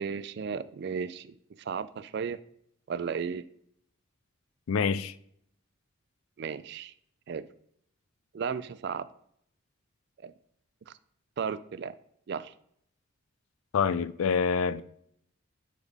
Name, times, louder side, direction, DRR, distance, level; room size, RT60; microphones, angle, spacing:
voice 1, 0.0-2.4 2.9-3.5 6.4-6.9 7.3-7.5 8.3-9.1 10.2-10.3 10.9-11.0 11.4-11.9 12.3-12.5, right 6 dB, 50° right, 0.3 m, -34 dB
voice 2, 4.7-5.1 13.7-14.8, left 6 dB, 80° left, 0.4 m, -26 dB
9.9 x 3.6 x 3.5 m
head